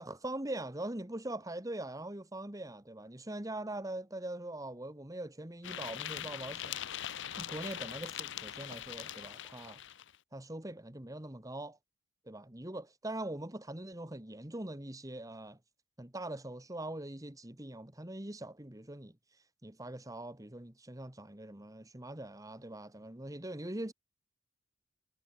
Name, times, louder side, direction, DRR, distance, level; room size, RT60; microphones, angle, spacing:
voice 1, 0.0-6.8 7.4-9.8 10.3-11.8 12.3-15.6 16.0-19.1 19.6-23.9, right 1 dB, 15° right, 1.6 m, -42 dB
sound 1, 5.6-10.2, left 10 dB, 60° left, 0.8 m, -42 dB
head